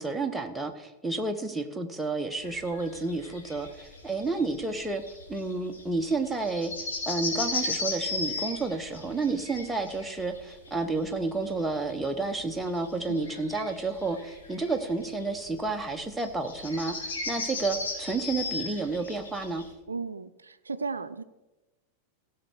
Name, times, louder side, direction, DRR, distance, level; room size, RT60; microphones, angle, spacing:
voice 1, 0.0-5.0 5.3-6.7 7.1-19.6, right 3 dB, 5° right, 4 dB, 1.0 m, -31 dB
sound 1, 2.4-19.6, left 3 dB, 65° left, 3.2 m, -37 dB
voice 2, 19.9-21.2, right 4 dB, 75° right, 13 dB, 0.5 m, -35 dB
16.0 x 6.5 x 4.6 m, 1.0 s
figure-of-eight pair, 90°, 0 cm